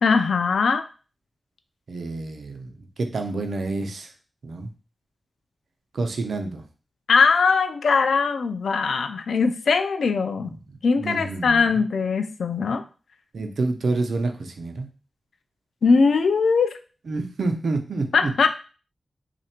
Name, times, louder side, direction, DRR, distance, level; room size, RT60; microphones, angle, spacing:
voice 1, 0.0-0.8 7.1-10.5 10.8-12.8 15.8-16.7 18.1-18.5, left 5 dB, 85° left, 8 dB, 0.3 m, -20 dB
voice 2, 1.9-4.1 4.4-4.7 5.9-6.6 10.4-10.5 11.0-11.7 13.3-14.9 17.1-18.3, right 3 dB, 75° right, 5 dB, 0.6 m, -28 dB
3.2 x 2.5 x 4.3 m, 0.36 s
wide cardioid pair, 85°, 0 cm